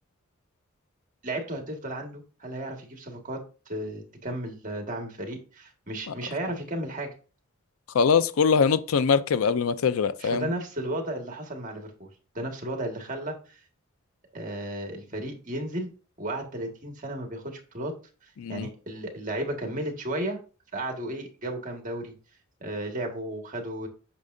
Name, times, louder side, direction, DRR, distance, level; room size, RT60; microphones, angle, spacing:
voice 1, 1.2-3.4 3.7-7.1 10.2-12.1 12.3-13.6 14.3-15.9 16.2-17.9 18.2-20.4 20.7-22.1 22.6-23.9, right 1 dB, 40° right, 1.8 m, -34 dB
voice 2, 7.9-10.5 18.4-18.7, left 6 dB, 90° left, 0.5 m, -22 dB
8.4 x 6.5 x 2.7 m
head